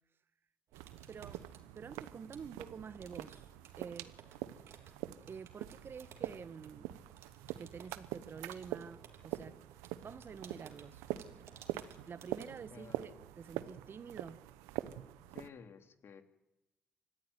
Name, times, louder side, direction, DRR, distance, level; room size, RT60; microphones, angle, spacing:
sound 1, 0.7-13.1, right 7 dB, 75° right, 3.2 m, -60 dB
sound 2, 0.7-15.5, right 14 dB, 90° right, 0.9 m, -45 dB
voice 1, 1.1-1.4 1.7-4.1 5.3-6.9 7.6-9.6 10.0-11.0 12.1-14.4, right 6 dB, 55° right, 1.5 m, -48 dB
voice 2, 12.7-13.0 15.3-16.2, left 6 dB, 60° left, 2.7 m, -53 dB
25.5 x 14.5 x 9.7 m
supercardioid pair, 50°, 5 cm